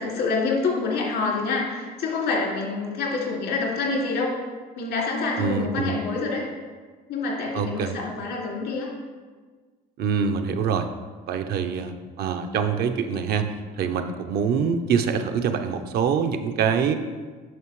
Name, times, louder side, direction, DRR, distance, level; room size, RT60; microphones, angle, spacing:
voice 1, 0.0-4.4 4.8-6.4 7.1-8.9, left 3 dB, 80° left, -3 dB, 2.4 m, -27 dB
voice 2, 5.4-6.0 7.5-8.0 10.0-10.9 11.3-13.5 13.8-16.9, right 6 dB, 65° right, 7 dB, 0.6 m, -25 dB
9.2 x 5.9 x 3.1 m, 1.4 s
cardioid pair, 110°, 17 cm